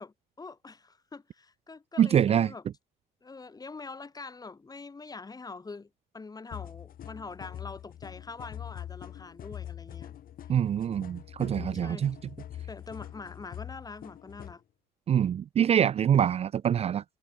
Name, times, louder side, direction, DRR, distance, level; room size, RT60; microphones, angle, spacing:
voice 1, 0.0-2.6 3.2-5.9 6.1-10.2 11.4-12.1 12.7-14.6, left 4 dB, 20° left, 6.6 m, -44 dB
voice 2, 2.0-2.5 10.5-12.2 15.1-17.0, right 9 dB, 35° right, 0.5 m, -25 dB
sound 1, 6.5-14.6, left 11 dB, 55° left, 3.6 m, -43 dB
cardioid pair, 110°, 17 cm